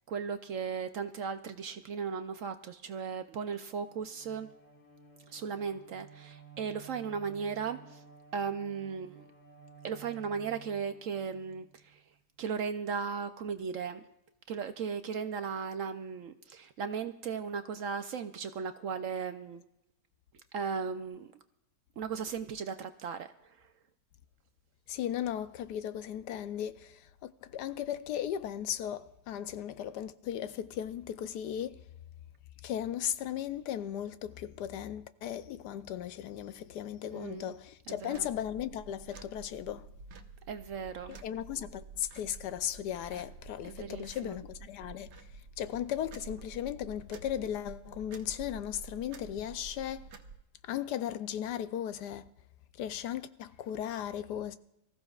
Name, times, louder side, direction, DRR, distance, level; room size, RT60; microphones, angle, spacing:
voice 1, 0.1-4.5 5.3-8.0 8.3-9.2 9.8-12.0 12.4-14.0 14.5-19.6 20.5-21.3 22.0-23.3 37.1-37.6 37.9-38.3 40.5-41.2 43.6-44.4, right 6 dB, 65° right, 0.8 m, -36 dB
Bowed string instrument, 3.8-12.2, right 6 dB, 40° left, 1.9 m, -54 dB
voice 2, 24.9-31.7 32.6-39.9 41.1-45.1 45.6-50.0 50.7-52.3 52.8-54.6, left 10 dB, 80° left, 1.2 m, -36 dB
sound 1, 38.1-50.4, right 4 dB, 85° right, 1.6 m, -50 dB
24.0 x 14.5 x 2.4 m
omnidirectional pair, 1.8 m